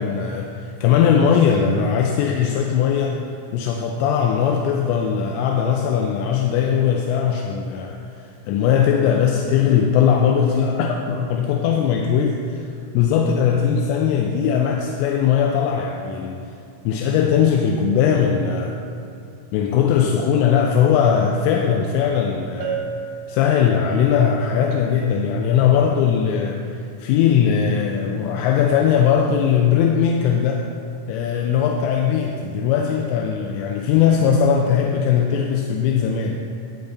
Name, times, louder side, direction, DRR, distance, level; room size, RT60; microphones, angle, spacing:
voice 1, 0.0-3.2 3.5-12.7 12.9-16.4 16.9-18.8 19.5-22.9 23.3-30.7 31.1-36.4, left 7 dB, 85° left, 1 dB, 3.1 m, -19 dB
Bell, 22.6-24.2, right 7 dB, 80° right, 3.3 m, -32 dB
12.0 x 4.0 x 8.0 m, 2.6 s
omnidirectional pair, 5.9 m